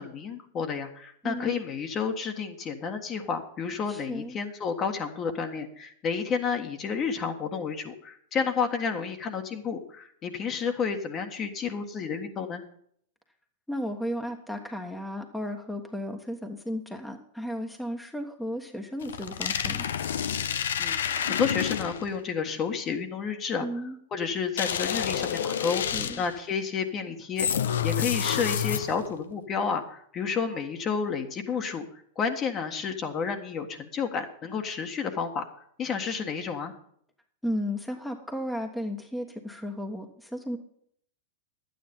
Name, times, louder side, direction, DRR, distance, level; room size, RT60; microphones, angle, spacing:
voice 1, 0.0-12.6 20.8-23.7 24.1-27.5 27.8-35.4 35.8-36.7, left 6 dB, 30° left, 5 dB, 1.6 m, -31 dB
voice 2, 1.2-1.6 3.9-4.4 13.7-19.9 23.6-24.0 25.9-26.2 37.4-40.6, equal, 5° left, 3 dB, 1.4 m, -34 dB
sound 1, 19.0-22.2 24.6-26.4 27.4-29.1, left 8 dB, 75° left, 0.7 m, -29 dB
11.5 x 9.3 x 5.4 m, 0.65 s
hypercardioid pair, 100°, 0 cm